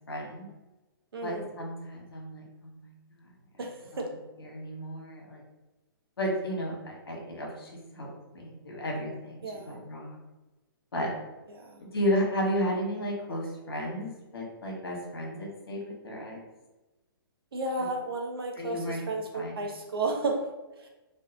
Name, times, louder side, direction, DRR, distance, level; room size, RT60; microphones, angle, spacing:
voice 1, 0.1-0.5 1.2-3.6 3.9-4.0 4.4-5.4 6.2-10.2 10.9-11.1 11.8-16.4 17.8-17.9 18.6-19.1 19.3-19.6, equal, 80° left, -1 dB, 1.3 m, -33 dB
voice 2, 1.1-1.5 3.6-4.0 9.4-9.9 11.5-11.8 17.5-20.5 20.8-20.9, right 2 dB, 75° right, 2 dB, 0.8 m, -33 dB
3.5 x 2.4 x 2.8 m, 1.1 s
hypercardioid pair, 135°, 12 cm